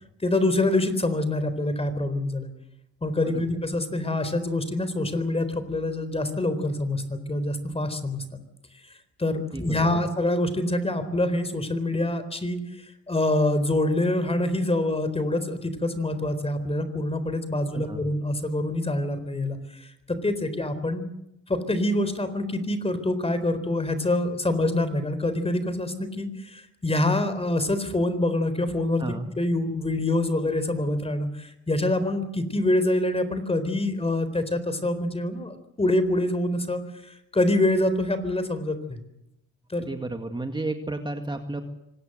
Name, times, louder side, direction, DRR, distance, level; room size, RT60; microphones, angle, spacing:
voice 1, 0.2-2.5 3.0-8.2 9.2-19.9 20.2-21.0 21.5-29.0 29.4-39.0 39.7-39.9, left 1 dB, 20° left, 12 dB, 4.1 m, -26 dB
voice 2, 9.5-10.0 17.7-18.0 29.0-29.3 39.9-41.6, right 2 dB, 15° right, 5 dB, 2.1 m, -32 dB
25.0 x 19.0 x 8.0 m, 0.82 s
cardioid pair, 90°, 30 cm